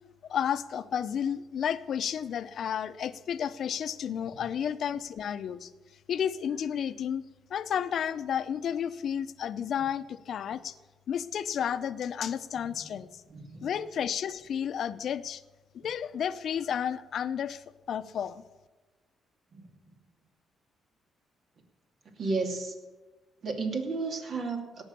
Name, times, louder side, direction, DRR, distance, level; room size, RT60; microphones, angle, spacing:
voice 1, 0.3-5.7 6.1-10.7 11.1-13.2 13.6-15.4 15.7-18.4, left 8 dB, 65° left, 12 dB, 0.7 m, -32 dB
voice 2, 13.3-13.7 19.5-19.9 22.2-22.7 23.4-24.8, right 3 dB, 60° right, 3 dB, 2.7 m, -33 dB
18.0 x 6.3 x 8.4 m, 1.2 s
cardioid pair, 90°, 0 cm